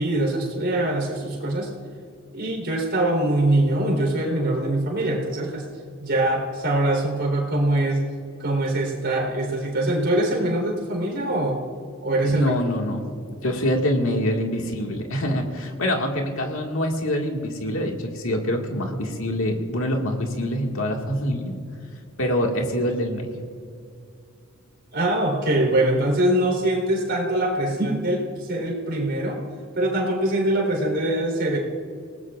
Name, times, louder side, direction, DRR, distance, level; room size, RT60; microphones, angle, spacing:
voice 1, 0.0-1.7 2.3-5.6 6.0-8.1 8.4-11.6 12.0-12.5 24.9-29.4 29.8-31.6, right 1 dB, 55° right, 0 dB, 3.9 m, -23 dB
voice 2, 12.2-13.1 13.4-21.6 22.2-23.3, equal, 75° left, 1 dB, 2.0 m, -25 dB
29.0 x 19.0 x 2.5 m, 2.3 s
head